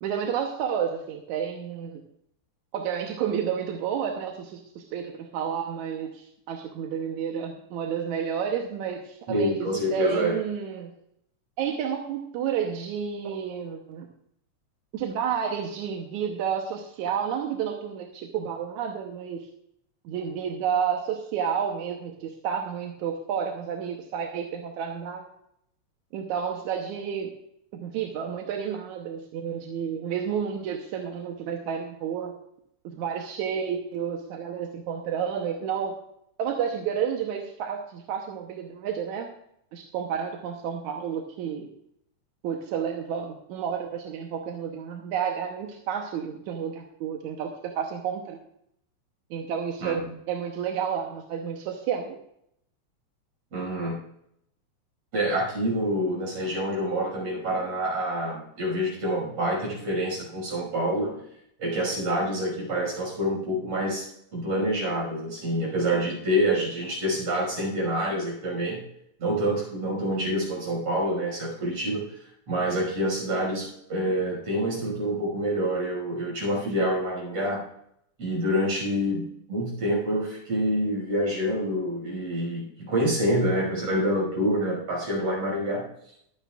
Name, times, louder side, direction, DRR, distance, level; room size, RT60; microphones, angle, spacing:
voice 1, 0.0-2.0 2.7-10.9 11.6-14.1 14.9-19.5 20.1-25.3 26.1-27.3 27.7-32.4 32.8-36.0 36.4-39.3 39.7-41.7 42.4-48.4 49.3-52.2, right 8 dB, 90° right, 2 dB, 2.4 m, -31 dB
voice 2, 9.3-10.3 49.8-50.0 53.5-54.0 55.1-61.2 61.6-68.8 69.2-77.6 78.2-85.9, equal, 60° right, -2 dB, 7.1 m, -27 dB
22.5 x 9.1 x 2.5 m, 0.73 s
omnidirectional pair, 3.3 m